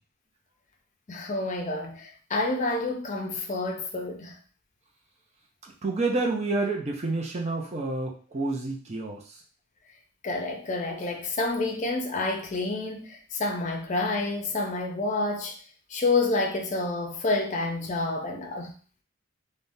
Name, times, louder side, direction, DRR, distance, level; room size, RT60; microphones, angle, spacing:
voice 1, 1.1-4.4 10.2-15.6 15.9-18.7, left 2 dB, 35° left, 0.5 m, -29 dB
voice 2, 5.8-9.2, right 3 dB, 30° right, 0.5 m, -28 dB
3.5 x 2.1 x 2.6 m
head